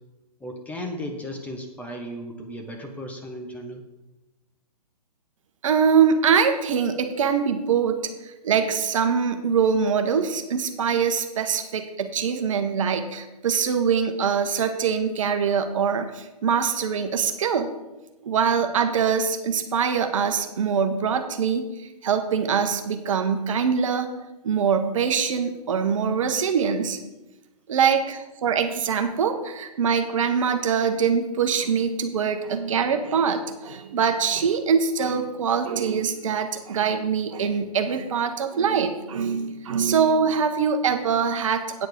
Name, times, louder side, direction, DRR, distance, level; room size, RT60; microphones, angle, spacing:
voice 1, 0.4-3.8, equal, 5° left, 2 dB, 1.1 m, -35 dB
voice 2, 5.6-17.7 18.2-24.1 24.4-27.0 27.7-41.9, right 6 dB, 50° right, 7 dB, 1.1 m, -23 dB
8.9 x 7.7 x 5.1 m, 1.0 s
figure-of-eight pair, 125°, 21 cm